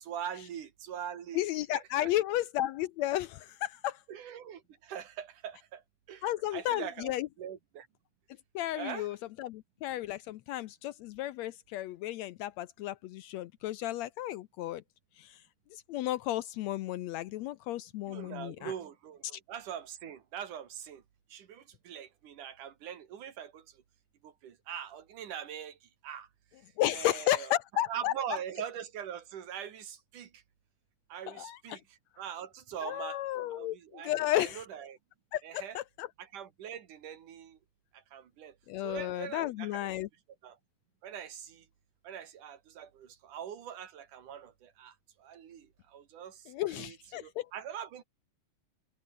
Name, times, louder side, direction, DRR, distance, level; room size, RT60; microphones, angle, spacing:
voice 1, 0.0-1.4 1.8-2.1 4.1-5.8 6.1-7.9 8.8-9.1 18.1-21.0 21.3-23.8 24.2-26.3 26.9-27.5 27.9-30.4 31.1-33.2 33.5-35.0 35.4-35.8 36.2-37.6 37.9-39.9 40.4-40.6 41.0-41.7 42.0-48.0, right 9 dB, 80° right, 3.6 m, -43 dB
voice 2, 1.3-4.0 6.2-7.3 8.6-14.8 15.2-15.4 15.7-18.7 19.3-19.4 26.8-28.1 31.3-31.8 32.8-34.6 35.3-36.1 38.7-40.1 46.5-47.5, left 14 dB, 75° left, 1.7 m, -33 dB
omnidirectional pair, 3.6 m